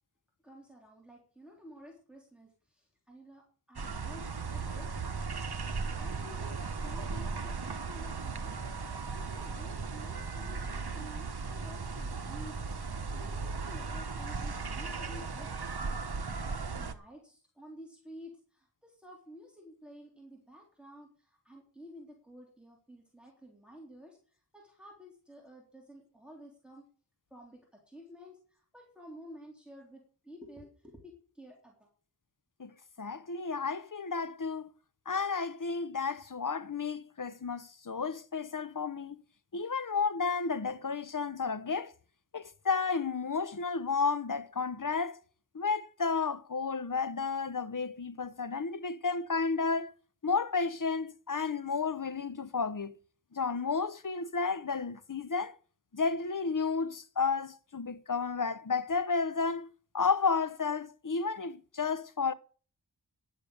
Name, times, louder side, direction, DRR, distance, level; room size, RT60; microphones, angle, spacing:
voice 1, 0.4-2.5 3.1-4.9 6.0-16.0 16.7-24.2 24.5-26.8 27.3-31.7, equal, ahead, 3.7 m, -52 dB
sound 1, 3.8-16.9, right 4 dB, 65° right, 1.0 m, -37 dB
voice 2, 33.0-34.7 35.1-39.2 39.5-41.9 42.3-45.2 45.5-49.9 50.2-52.9 53.3-55.5 55.9-62.3, left 5 dB, 50° left, 0.8 m, -32 dB
11.0 x 7.9 x 6.8 m
wide cardioid pair, 40°, 42 cm